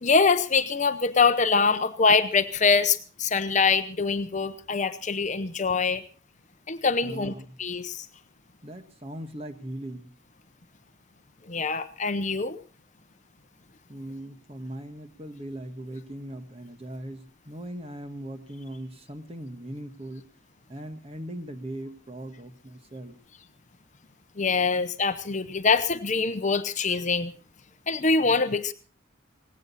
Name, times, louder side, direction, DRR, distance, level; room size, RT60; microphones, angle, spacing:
voice 1, 0.0-6.0 6.7-7.3 7.6-8.1 11.5-12.6 24.4-27.3 27.9-28.7, left 4 dB, 35° left, 11 dB, 0.8 m, -24 dB
voice 2, 7.0-7.6 8.6-10.1 13.9-20.3 20.7-23.2 28.2-28.4, right 1 dB, 30° right, 8 dB, 1.4 m, -39 dB
18.5 x 16.5 x 4.1 m, 0.36 s
head